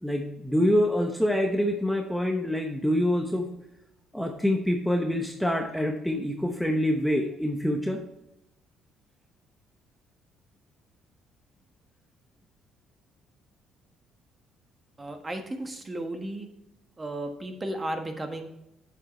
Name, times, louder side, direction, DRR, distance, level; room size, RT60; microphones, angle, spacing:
voice 1, 0.0-3.5 4.1-8.0, equal, ahead, 2 dB, 1.0 m, -26 dB
voice 2, 15.0-16.5 17.0-18.5, right 1 dB, 20° right, 5 dB, 1.4 m, -34 dB
7.8 x 7.4 x 3.1 m, 0.85 s
cardioid pair, 100°, 0 cm